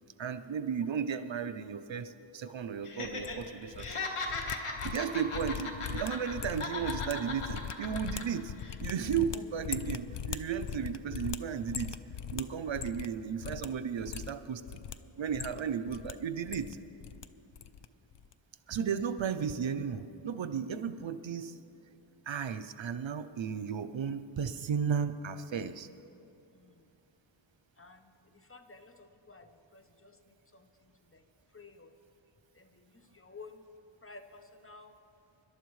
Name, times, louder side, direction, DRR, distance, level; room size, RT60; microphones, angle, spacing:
voice 1, 0.2-4.0 4.8-8.5 8.8-12.0 12.3-14.6 15.2-16.8 18.7-21.6 22.3-25.9, right 7 dB, 65° right, 11 dB, 0.6 m, -34 dB
Laughter, 2.8-3.4 3.7-6.3 6.6-8.2 8.6-8.7, left 3 dB, 85° left, 1.5 m, -37 dB
sound 1, 3.0-3.9 4.2-13.1 13.4-13.7 14.0-14.9 15.3-16.1 16.4-17.2 17.5-17.9 18.1-18.3, left 8 dB, 55° left, 0.6 m, -40 dB
voice 2, 26.5-26.8 27.8-31.2 31.5-31.9 32.5-33.6 34.0-34.9, left 3 dB, 25° left, 7 dB, 0.8 m, -54 dB
25.0 x 12.0 x 3.2 m, 2.9 s
wide cardioid pair, 65°, 50 cm